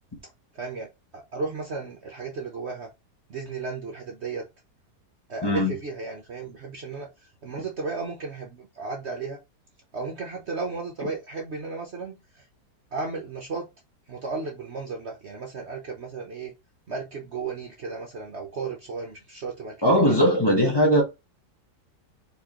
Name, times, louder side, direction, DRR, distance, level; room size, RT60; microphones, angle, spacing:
voice 1, 0.5-0.9 1.1-2.9 3.3-4.4 5.3-9.4 9.9-12.5 12.9-13.7 14.1-16.5 16.9-19.7, right 4 dB, 50° right, 1.0 m, -34 dB
voice 2, 5.4-5.7 19.8-21.0, equal, 15° left, 1.4 m, -19 dB
4.7 x 3.5 x 3.0 m
omnidirectional pair, 1.7 m